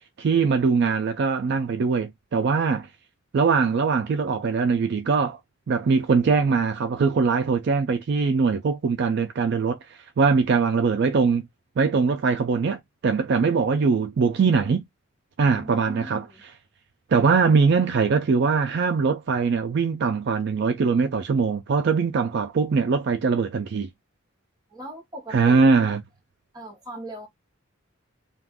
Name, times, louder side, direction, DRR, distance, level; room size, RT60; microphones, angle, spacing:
voice 1, 0.2-2.9 3.3-5.4 5.7-9.8 10.2-11.5 11.8-14.8 15.4-16.2 17.1-23.9 25.3-26.0, right 5 dB, 55° right, 0.4 m, -22 dB
voice 2, 15.4-16.4 24.7-25.7 26.5-27.3, right 1 dB, 20° right, 1.0 m, -39 dB
2.5 x 2.3 x 3.4 m
head